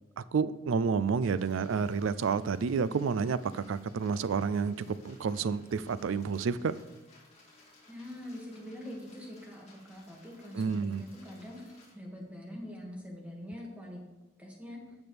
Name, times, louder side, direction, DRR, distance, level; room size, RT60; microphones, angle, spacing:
voice 1, 0.2-6.8 10.5-11.0, right 5 dB, 80° right, 16 dB, 0.4 m, -30 dB
sound 1, 1.2-11.9, left 2 dB, 30° left, 2.6 m, -59 dB
voice 2, 7.9-14.0 14.4-14.8, left 1 dB, 5° right, -2 dB, 2.0 m, -44 dB
15.5 x 6.1 x 3.4 m, 1.1 s
head